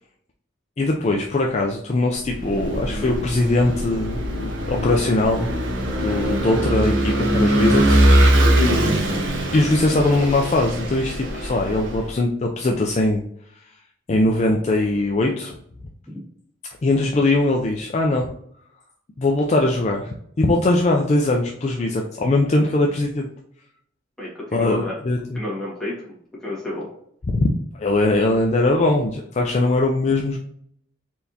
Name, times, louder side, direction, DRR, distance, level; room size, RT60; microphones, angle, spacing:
voice 1, 0.8-5.5 6.0-8.0 9.5-13.2 13.5-13.7 14.1-15.6 16.8-18.3 19.2-23.3 24.5-25.4 27.3-27.5 27.8-30.4, left 2 dB, 35° left, 1 dB, 0.4 m, -21 dB
Vehicle / Engine, 2.3-12.1, right 1 dB, 65° right, 0.8 m, -21 dB
sound 1, 2.4-7.5 11.4-11.5, left 1 dB, 25° right, 0.7 m, -38 dB
voice 2, 24.2-24.9 25.3-26.1 26.4-26.9, left 1 dB, 5° left, -7 dB, 1.6 m, -31 dB
4.5 x 3.3 x 2.7 m, 0.68 s
head